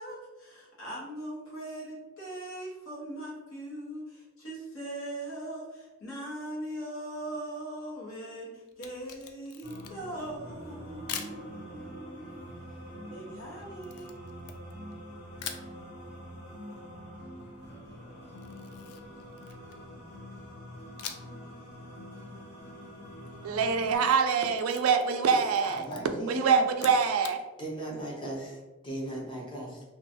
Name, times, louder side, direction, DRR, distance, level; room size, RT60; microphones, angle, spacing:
voice 1, 0.0-12.4 13.0-14.2, right 1 dB, 70° left, 1.1 m, -40 dB
Camera, 8.7-10.2 11.1-11.4 13.8-15.0 15.4-15.7 18.4-19.9 21.0-21.4 21.7-21.8 23.8-25.2 25.5-26.0 26.7-27.4, left 8 dB, 90° left, 0.3 m, -42 dB
sound 1, 9.6-24.0, equal, 55° left, 0.8 m, -45 dB
voice 2, 23.4-25.8 26.3-27.4, right 6 dB, 80° right, 0.3 m, -25 dB
voice 3, 25.6-26.6 27.6-29.8, right 1 dB, 25° left, 0.6 m, -37 dB
2.9 x 2.3 x 2.7 m
head